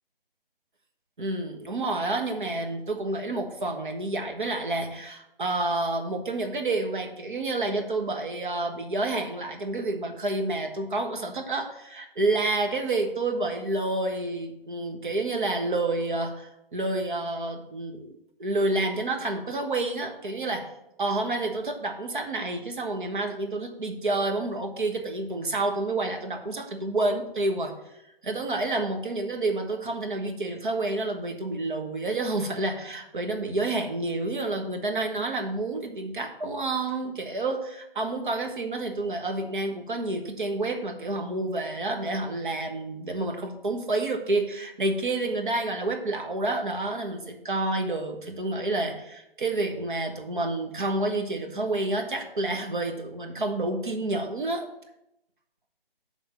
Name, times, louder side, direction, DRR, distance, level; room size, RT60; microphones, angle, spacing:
voice 1, 1.2-20.7 21.0-27.7 28.2-54.7, right 2 dB, 55° right, 4 dB, 1.1 m, -29 dB
10.0 x 3.5 x 5.5 m, 0.84 s
figure-of-eight pair, 145°, 29 cm